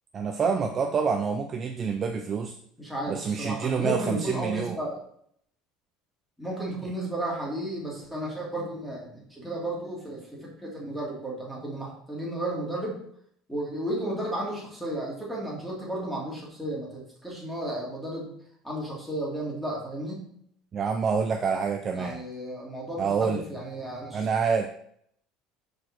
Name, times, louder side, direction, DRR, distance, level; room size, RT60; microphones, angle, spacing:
voice 1, 0.1-2.6 3.1-4.8 20.7-22.2 23.0-23.4 24.1-24.7, right 5 dB, 25° right, 5 dB, 0.5 m, -27 dB
voice 2, 2.8-5.0 6.4-13.0 13.5-18.3 18.6-20.3 21.9-24.3, right 1 dB, ahead, -4 dB, 2.4 m, -33 dB
6.4 x 4.8 x 6.0 m, 0.67 s
cardioid pair, 170°, 0 cm